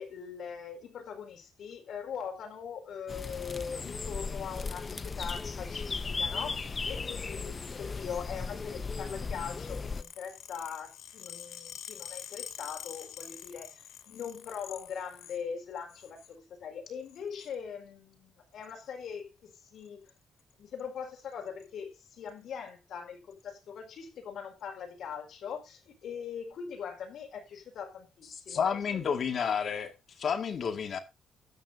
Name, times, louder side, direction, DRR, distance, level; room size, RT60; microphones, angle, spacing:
voice 1, 0.0-20.0 20.6-29.0 30.7-30.8, left 7 dB, 60° left, 4.5 m, -41 dB
sound 1, 3.1-10.0, left 4 dB, 25° left, 0.7 m, -36 dB
sound 2, 9.5-15.4 15.8-16.3 17.1-17.5 18.6-18.9 19.8-20.1 20.4-20.5 20.8-20.9 21.2-21.7 22.3-22.4 23.3-23.4, left 10 dB, 90° left, 2.8 m, -47 dB
voice 2, 28.5-29.9 30.2-31.0, left 7 dB, 45° left, 1.9 m, -30 dB
13.0 x 8.9 x 4.0 m
cardioid pair, 170°, 0 cm